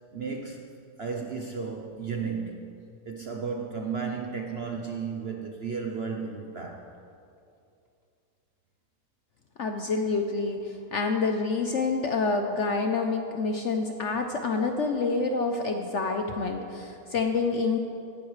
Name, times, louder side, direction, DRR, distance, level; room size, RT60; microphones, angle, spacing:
voice 1, 0.1-0.7 1.0-6.9, right 5 dB, 55° right, 2 dB, 0.7 m, -34 dB
voice 2, 9.6-17.8, left 4 dB, 60° left, 4 dB, 0.8 m, -27 dB
17.0 x 12.0 x 3.2 m, 2.6 s
omnidirectional pair, 1.8 m